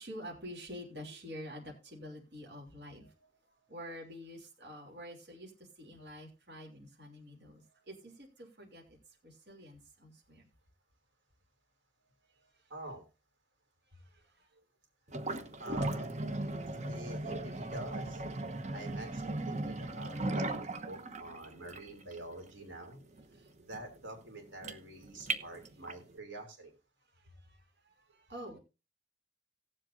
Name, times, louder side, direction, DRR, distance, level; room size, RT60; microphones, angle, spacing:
voice 1, 0.0-10.5 12.2-12.7 13.9-14.5 18.5-18.6 23.3-23.5 27.1-28.6, equal, 60° right, -1 dB, 3.0 m, -49 dB
voice 2, 12.7-13.0 15.6-16.2 16.8-18.2 18.7-23.0 23.6-26.7, right 1 dB, 80° right, 3 dB, 3.2 m, -47 dB
sound 1, 15.1-26.1, right 2 dB, 35° right, 1.0 m, -38 dB
19.0 x 7.6 x 2.7 m, 0.28 s
head